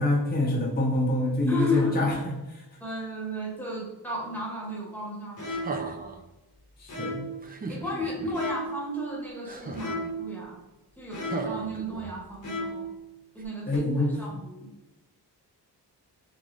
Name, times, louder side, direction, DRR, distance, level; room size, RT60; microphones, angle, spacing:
voice 1, 0.0-2.2 6.8-7.3 13.7-14.2, left 1 dB, 25° left, -3 dB, 0.8 m, -25 dB
voice 2, 1.5-2.1 2.8-5.5 7.7-10.6 11.0-12.9 13.3-14.7, left 1 dB, 5° left, -3 dB, 1.2 m, -33 dB
sound 1, 5.4-6.0 6.9-7.4 8.3-8.9 9.8-10.3 11.1-11.7 12.4-13.0 13.7-13.8, equal, 45° left, 1.0 m, -34 dB
sound 2, 5.4-6.2 7.4-8.3 9.4-10.1 11.2-12.3 13.4-13.5, right 3 dB, 25° right, 0.4 m, -37 dB
3.9 x 3.7 x 3.1 m, 1.0 s
wide cardioid pair, 145°, 41 cm